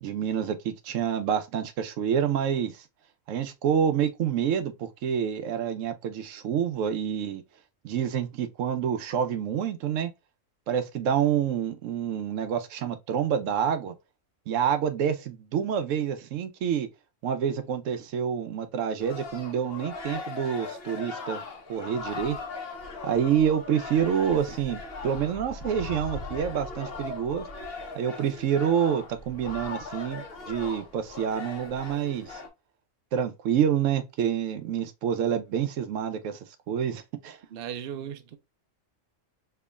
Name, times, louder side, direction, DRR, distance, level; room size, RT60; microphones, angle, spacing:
voice 1, 0.0-2.8 3.3-7.4 7.8-10.1 10.7-13.9 14.5-16.9 17.2-21.4 21.7-22.4 23.0-27.4 27.9-32.4 33.1-36.4 36.7-37.4, right 8 dB, 80° right, 0.9 m, -27 dB
sound 1, 19.0-32.5, left 3 dB, 50° left, 1.1 m, -39 dB
voice 2, 37.5-38.4, right 9 dB, 60° right, 0.6 m, -36 dB
4.5 x 2.9 x 2.2 m
omnidirectional pair, 1.3 m